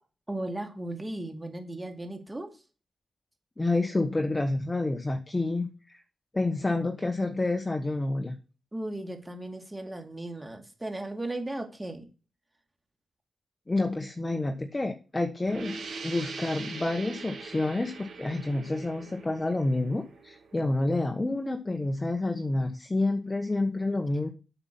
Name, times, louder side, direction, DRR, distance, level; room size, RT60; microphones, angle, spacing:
voice 1, 0.3-2.6 8.7-12.1, right 1 dB, 15° right, 4 dB, 2.3 m, -36 dB
voice 2, 3.6-6.0 6.3-8.4 13.7-24.3, left 2 dB, 20° left, 5 dB, 1.1 m, -29 dB
sound 1, 15.5-20.9, right 4 dB, 80° right, 4.6 m, -42 dB
8.0 x 6.9 x 5.9 m, 0.33 s
cardioid pair, 95°, 0 cm